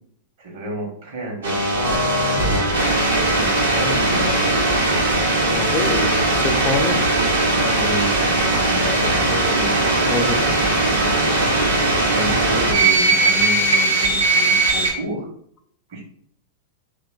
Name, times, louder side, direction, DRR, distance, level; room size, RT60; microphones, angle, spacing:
voice 1, 0.4-2.0 2.9-4.3 7.7-10.4 10.8-11.1 11.9-15.3 15.9-16.0, right 2 dB, 60° right, 0 dB, 1.0 m, -31 dB
sound 1, 1.4-14.9, right 2 dB, 75° right, 0.7 m, -19 dB
voice 2, 5.5-7.0 10.1-10.5, left 4 dB, 30° left, 6 dB, 0.3 m, -25 dB
3.0 x 2.2 x 2.3 m, 0.64 s
hypercardioid pair, 100°, 0 cm